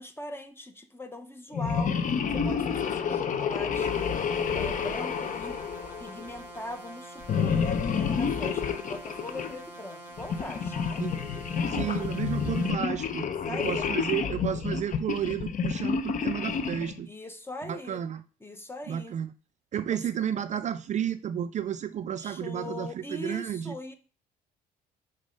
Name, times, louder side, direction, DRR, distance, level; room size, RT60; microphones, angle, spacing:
voice 1, 0.0-2.0 2.3-4.3 4.5-5.6 6.0-11.0 13.2-13.9 17.0-18.0 18.4-19.1 19.9-20.0 22.2-23.9, left 1 dB, 15° left, 0.9 m, -41 dB
sound 1, 1.5-6.4 7.2-9.5 10.2-17.0, left 6 dB, 45° left, 0.8 m, -29 dB
sound 2, 3.7-12.7, right 1 dB, 10° right, 2.3 m, -45 dB
voice 2, 11.7-17.1 17.6-18.2 18.9-19.3 19.7-23.7, right 9 dB, 40° right, 0.4 m, -32 dB
5.2 x 4.0 x 5.3 m
cardioid pair, 90°, 18 cm